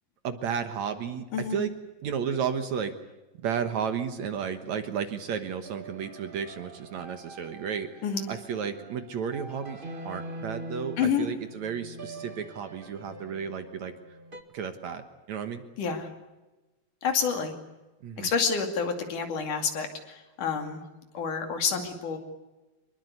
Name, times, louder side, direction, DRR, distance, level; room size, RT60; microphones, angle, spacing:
voice 1, 0.2-1.7 2.0-2.9 3.4-13.9 14.5-15.6 18.0-18.3, right 7 dB, 60° right, 9 dB, 2.3 m, -33 dB
sound 1, 4.8-14.4, right 2 dB, 25° right, 1.1 m, -44 dB
voice 2, 15.8-16.1 17.0-17.5 18.2-20.8 21.1-22.2, left 6 dB, 60° left, 5 dB, 3.9 m, -28 dB
25.5 x 21.5 x 8.2 m, 1.1 s
omnidirectional pair, 4.1 m